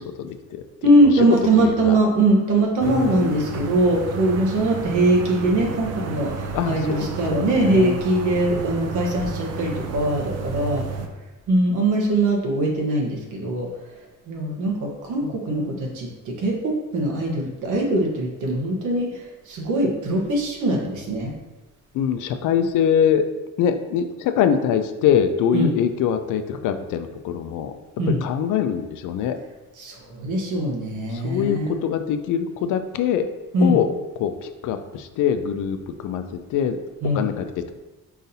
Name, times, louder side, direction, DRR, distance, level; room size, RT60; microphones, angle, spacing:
voice 1, 0.0-0.6 1.0-2.0 2.8-3.8 6.5-8.0 15.2-15.3 15.6-15.8 21.9-23.3 23.6-27.7 28.2-29.4 31.1-33.3 33.6-33.9 34.2-36.2 36.5-36.8 37.1-37.7, left 8 dB, 85° left, 8 dB, 0.5 m, -24 dB
voice 2, 0.8-10.8 11.5-13.7 14.3-21.3 25.5-25.7 28.0-28.2 29.8-31.8 33.5-33.8 37.0-37.3, right 1 dB, 80° right, -1 dB, 1.2 m, -21 dB
sound 1, 2.8-11.1, right 4 dB, 55° right, 0.6 m, -32 dB
4.9 x 4.0 x 2.7 m, 1.1 s
cardioid pair, 90°, 30 cm